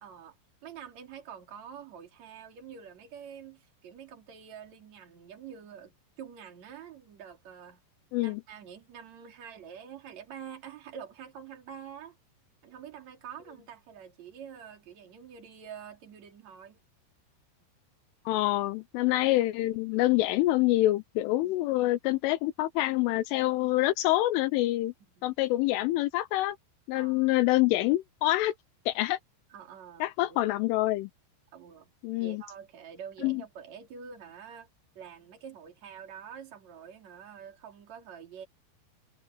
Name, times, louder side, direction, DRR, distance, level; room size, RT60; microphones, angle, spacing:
voice 1, 0.0-0.4 0.6-7.8 8.2-12.2 12.6-16.8 25.2-25.3 26.9-27.4 29.5-30.5 31.5-31.9 32.2-34.7 35.0-38.5, right 8 dB, 40° right, 4.0 m, -46 dB
voice 2, 18.3-24.9 25.2-26.6 26.9-28.6 28.9-29.2 30.0-31.1 32.0-32.4 33.2-33.4, left 17 dB, 85° left, 3.4 m, -26 dB
omnidirectional pair, 5.6 m